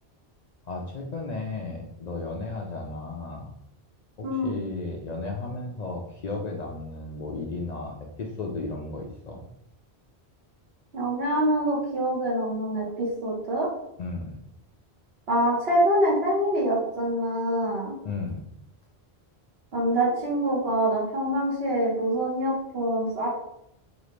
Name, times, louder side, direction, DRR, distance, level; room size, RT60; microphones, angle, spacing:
voice 1, 0.6-3.5 4.2-9.5 14.0-14.4 18.0-18.4, left 3 dB, 50° left, -1 dB, 0.5 m, -34 dB
voice 2, 4.2-4.6 10.9-13.7 15.3-17.9 19.7-23.3, right 1 dB, 70° right, -4 dB, 1.6 m, -25 dB
5.0 x 2.5 x 3.1 m, 0.77 s
omnidirectional pair, 1.1 m